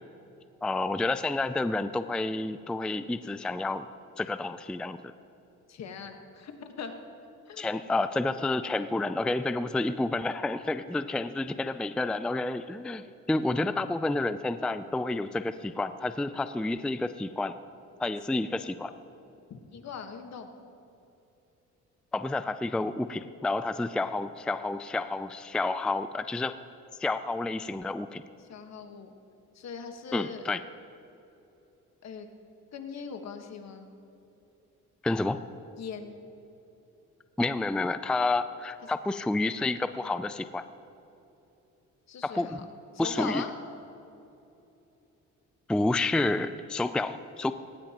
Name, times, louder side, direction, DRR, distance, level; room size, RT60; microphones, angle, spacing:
voice 1, 0.6-3.9 4.2-5.0 7.6-17.5 18.0-18.9 22.1-26.5 27.0-28.2 30.1-30.6 35.0-35.4 37.4-40.7 42.2-42.7 43.0-43.4 45.7-47.5, left 2 dB, 5° left, 11 dB, 0.4 m, -29 dB
voice 2, 5.7-6.9 7.5-7.7 19.5-20.5 28.4-29.1 29.5-30.4 32.0-32.3 32.7-33.9 35.8-36.2 42.1-42.6 42.9-43.5, left 6 dB, 60° left, 5 dB, 1.5 m, -40 dB
18.0 x 18.0 x 3.0 m, 2.9 s
cardioid pair, 90°, 30 cm